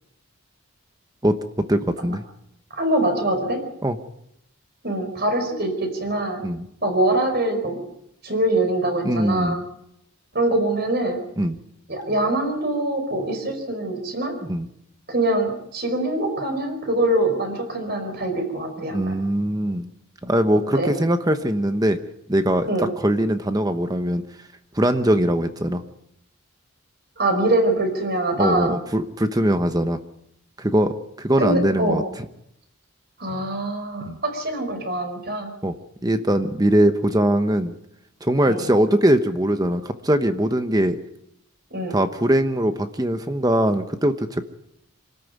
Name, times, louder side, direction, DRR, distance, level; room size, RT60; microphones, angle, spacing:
voice 1, 1.2-2.2 3.8-4.0 6.4-6.7 9.0-9.6 11.4-11.6 14.5-14.7 18.9-19.9 20.2-22.0 22.3-24.2 24.7-25.8 28.4-30.0 30.6-32.0 34.1-34.2 35.6-35.7 36.0-37.8 38.2-41.0 41.9-44.4, right 1 dB, 15° right, 8 dB, 1.0 m, -21 dB
voice 2, 2.7-3.6 4.8-6.4 6.8-7.8 8.2-9.6 10.3-11.2 11.9-14.3 15.1-19.1 20.7-20.9 22.7-22.9 27.2-28.7 31.4-32.0 33.2-35.6 38.5-38.6 41.7-42.0, right 1 dB, 45° right, 5 dB, 5.0 m, -23 dB
26.0 x 13.5 x 9.4 m, 0.78 s
head